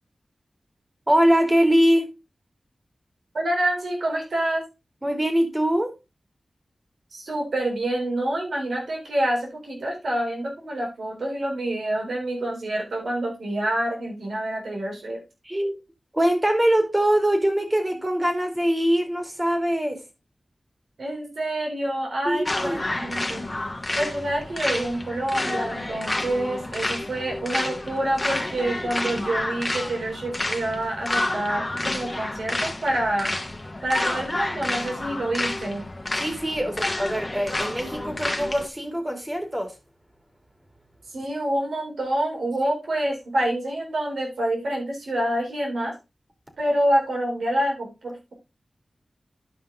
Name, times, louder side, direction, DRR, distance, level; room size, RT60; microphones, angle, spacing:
voice 1, 1.1-2.1 5.0-5.9 15.4-15.8 16.1-20.0 22.2-22.8 36.2-39.7, equal, 20° right, 3.1 m, -22 dB
voice 2, 3.3-4.6 7.1-15.2 21.0-23.5 23.9-33.3 33.8-35.8 41.1-45.9 46.6-48.3, right 1 dB, 85° right, 3.9 m, -27 dB
sound 1, 22.5-38.7, left 2 dB, 30° left, 1.8 m, -29 dB
11.0 x 5.3 x 3.8 m
cardioid pair, 45°, 0 cm